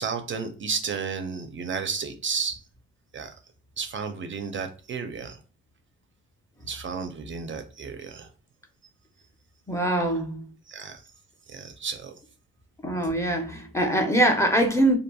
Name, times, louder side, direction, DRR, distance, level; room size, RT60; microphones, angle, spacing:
voice 1, 0.0-2.6 3.1-3.3 3.8-5.4 6.6-8.3 10.7-11.0 11.5-12.1, right 5 dB, 40° right, 0.4 m, -32 dB
voice 2, 9.7-10.4 12.8-15.0, right 1 dB, 10° left, 0.6 m, -23 dB
2.6 x 2.6 x 2.2 m
cardioid pair, 90°, 30 cm